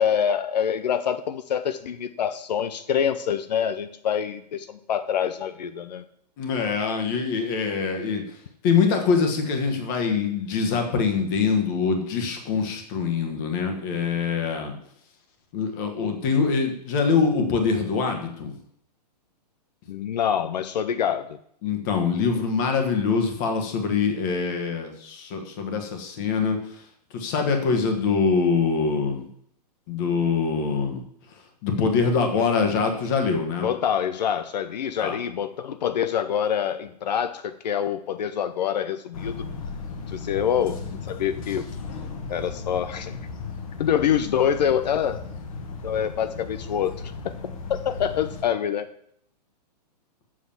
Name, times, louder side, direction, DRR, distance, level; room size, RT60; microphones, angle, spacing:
voice 1, 0.0-6.0 19.9-21.4 33.6-39.4 40.1-40.8 41.1-41.7 42.3-43.2 43.8-45.2 45.8-48.9, left 8 dB, 80° left, 11 dB, 0.7 m, -26 dB
voice 2, 6.4-8.2 8.6-14.7 15.5-18.5 21.6-26.8 27.1-29.3 29.9-31.0 31.6-33.7 35.0-35.2, left 5 dB, 30° left, 4 dB, 1.4 m, -24 dB
sound 1, 39.1-48.4, left 4 dB, 55° left, 1.5 m, -36 dB
7.6 x 6.1 x 7.2 m, 0.69 s
hypercardioid pair, 175°, 21 cm